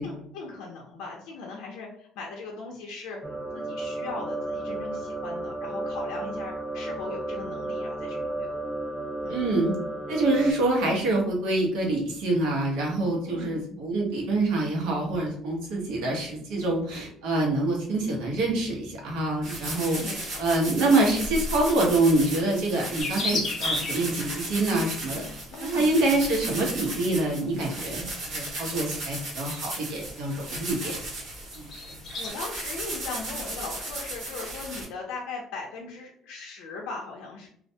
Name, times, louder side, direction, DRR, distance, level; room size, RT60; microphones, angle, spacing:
voice 1, 0.0-3.2 3.5-8.5 9.2-9.4 13.3-13.8 19.9-20.4 25.5-25.9 32.2-37.5, left 4 dB, 90° left, -1 dB, 0.5 m, -39 dB
sound 1, 3.2-10.5, right 2 dB, 15° right, 0.3 m, -33 dB
voice 2, 9.3-9.7 10.1-20.0 20.4-25.2 25.6-30.9 31.5-31.7, right 2 dB, 75° right, -1 dB, 0.9 m, -26 dB
sound 2, 19.4-34.8, right 1 dB, 50° right, 1.2 m, -35 dB
sound 3, 23.0-24.1 25.5-25.8 27.3-27.8 28.4-28.7 29.3-29.4 30.2-30.3 30.5-30.7 31.0-32.3, left 3 dB, 35° left, 0.6 m, -31 dB
2.4 x 2.1 x 2.7 m, 0.66 s
cardioid pair, 175°, 0 cm